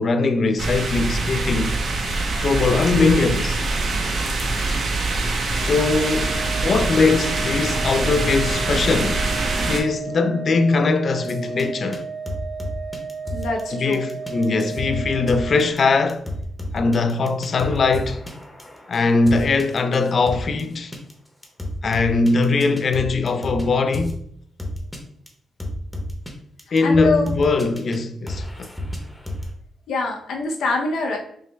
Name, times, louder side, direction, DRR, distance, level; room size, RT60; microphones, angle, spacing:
voice 1, 0.0-1.8 2.4-3.6 5.5-9.3 9.7-12.1 13.7-16.3 16.7-18.2 18.9-20.9 21.8-24.2 26.7-28.7, left 3 dB, 50° left, 0.4 m, -21 dB
sound 1, 0.6-9.8, right 2 dB, 60° right, 0.7 m, -24 dB
Organ, 5.6-16.3, right 5 dB, 30° right, 0.4 m, -34 dB
sound 2, 11.2-11.6 11.9-12.0 12.3-13.6 13.9-20.6 20.9-21.1 21.4-23.6 23.9-24.2 24.6-25.0 25.3-25.4 25.6-26.3 26.6-28.0 28.3-29.5, left 1 dB, 5° left, 0.8 m, -31 dB
voice 2, 13.3-14.0 26.8-27.3 29.9-31.2, left 3 dB, 85° left, 0.8 m, -24 dB
5.4 x 2.1 x 3.2 m
cardioid pair, 120°, 0 cm